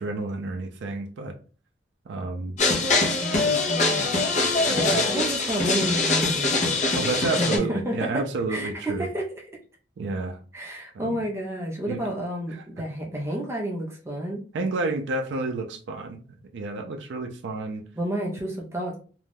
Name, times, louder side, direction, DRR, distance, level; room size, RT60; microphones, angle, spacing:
voice 1, 0.0-1.3 2.1-2.6 4.5-5.0 6.9-9.1 10.0-10.4 11.0-11.2 11.8-12.1 14.5-16.2 16.5-17.8, right 3 dB, 75° right, 4 dB, 0.4 m, -30 dB
sound 1, 2.6-7.6, left 3 dB, 40° left, 0.6 m, -23 dB
voice 2, 3.2-4.4 4.7-6.8 7.2-8.2 8.5-9.3 10.5-14.4 18.0-19.0, right 1 dB, 15° right, -1 dB, 0.5 m, -30 dB
2.5 x 2.2 x 3.3 m, 0.39 s
head